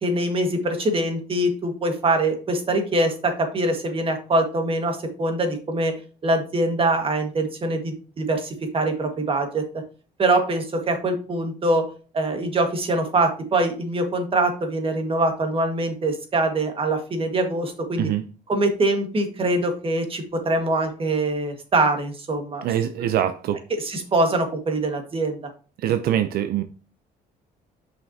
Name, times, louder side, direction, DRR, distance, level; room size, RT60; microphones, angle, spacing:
voice 1, 0.0-9.6 10.2-11.9 12.1-18.1 18.5-22.6 23.0-23.1 23.7-25.4, right 2 dB, 30° right, 1.7 m, -23 dB
voice 2, 22.6-23.6 25.8-26.6, right 11 dB, 65° right, 0.5 m, -23 dB
7.4 x 5.7 x 2.8 m
cardioid pair, 110°, 17 cm